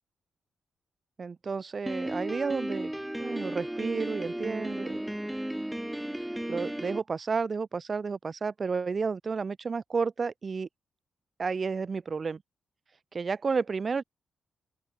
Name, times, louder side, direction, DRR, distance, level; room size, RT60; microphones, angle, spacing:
voice 1, 1.2-2.9 3.2-5.0 6.5-10.7 11.4-12.4 13.1-14.0, right 5 dB, 35° right, 0.4 m, -31 dB
Piano, 1.9-7.0, right 1 dB, 5° right, 1.6 m, -34 dB
open air
wide cardioid pair, 155°, 0 cm